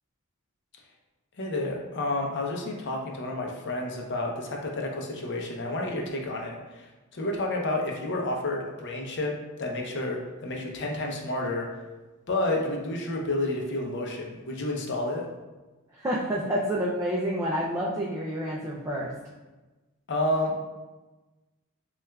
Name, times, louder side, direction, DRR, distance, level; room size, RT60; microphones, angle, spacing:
voice 1, 1.4-6.9 7.1-9.3 9.6-11.7 12.3-15.3 20.1-20.7, left 2 dB, 55° left, 0 dB, 0.6 m, -30 dB
voice 2, 16.0-19.1, equal, 15° right, -5 dB, 0.3 m, -28 dB
5.9 x 2.3 x 2.2 m, 1.2 s
head